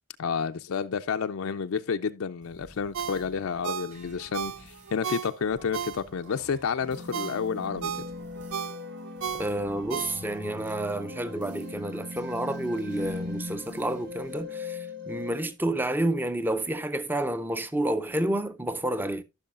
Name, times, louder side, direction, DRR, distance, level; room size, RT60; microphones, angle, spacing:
voice 1, 0.2-7.9, left 6 dB, 70° left, 0.4 m, -30 dB
sound 1, 2.4-14.4, equal, 30° right, 1.5 m, -54 dB
Ringtone, 2.9-6.4 6.8-10.6 11.0-11.1, right 7 dB, 65° right, 0.4 m, -35 dB
sound 2, 6.8-15.5, left 2 dB, 50° right, 1.2 m, -39 dB
voice 2, 9.4-19.2, right 1 dB, 10° right, 0.4 m, -30 dB
14.0 x 6.1 x 2.4 m
head